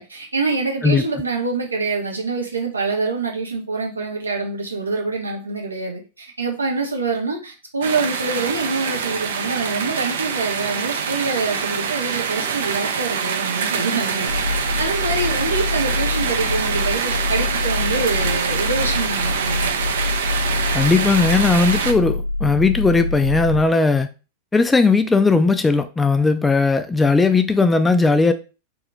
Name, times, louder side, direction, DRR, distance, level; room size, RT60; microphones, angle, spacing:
voice 1, 0.0-19.7, right 3 dB, 80° right, 0.8 m, -25 dB
sound 1, 7.8-21.9, right 6 dB, 60° right, 0.4 m, -25 dB
sound 2, 14.3-23.6, left 3 dB, 70° left, 0.8 m, -25 dB
voice 2, 20.7-24.1 24.5-28.3, left 4 dB, 10° left, 0.3 m, -17 dB
2.9 x 2.3 x 3.8 m
figure-of-eight pair, 90°, 0 cm